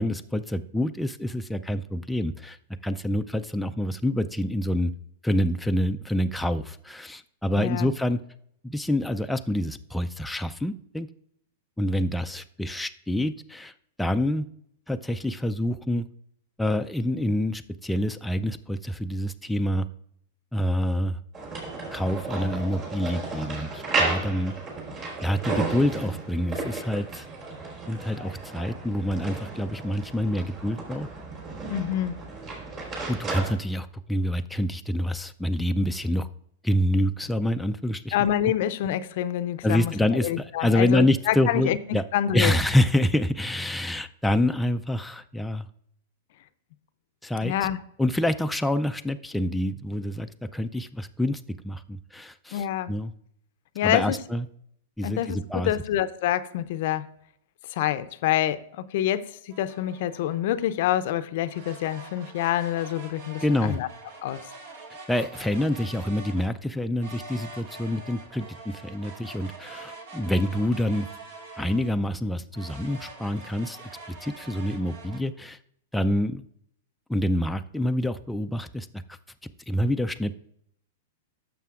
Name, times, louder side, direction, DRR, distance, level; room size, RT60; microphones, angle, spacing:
voice 1, 0.0-2.6 2.8-4.9 5.2-8.2 8.6-11.1 11.8-13.7 14.0-14.5 14.9-16.1 16.6-19.9 20.5-21.2 21.9-24.5 25.2-27.3 27.9-31.1 33.1-36.3 36.6-38.2 39.6-42.0 42.3-45.7 47.2-47.7 48.0-53.1 53.8-54.5 55.0-55.7 63.4-63.8 65.1-71.1 71.6-73.8 74.2-75.6 75.9-76.5 77.1-79.2 79.7-80.4, left 1 dB, 5° left, 0.3 m, -27 dB
voice 2, 7.6-7.9 31.6-32.2 38.1-39.9 40.2-41.8 42.1-42.6 47.4-47.8 52.5-52.9 53.8-54.2 55.0-57.0 57.7-63.9 64.2-64.4, left 12 dB, 60° left, 0.5 m, -27 dB
sound 1, 21.3-33.5, right 3 dB, 35° right, 3.5 m, -33 dB
sound 2, 59.5-60.7 61.4-66.5 67.0-72.1 72.5-75.2, right 3 dB, 65° right, 1.8 m, -44 dB
12.0 x 6.8 x 2.4 m
hypercardioid pair, 115°, 0 cm